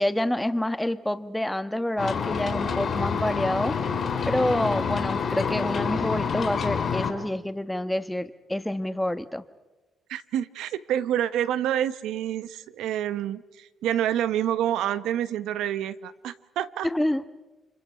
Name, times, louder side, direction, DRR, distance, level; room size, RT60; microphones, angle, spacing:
voice 1, 0.0-3.8 4.3-9.4 16.8-17.3, left 1 dB, 5° left, 11 dB, 1.3 m, -27 dB
sound 1, 2.0-7.1, left 6 dB, 50° left, 3.8 m, -27 dB
voice 2, 10.1-16.9, right 11 dB, 85° right, 13 dB, 1.0 m, -28 dB
30.0 x 25.0 x 5.7 m, 1.1 s
cardioid pair, 90°, 0 cm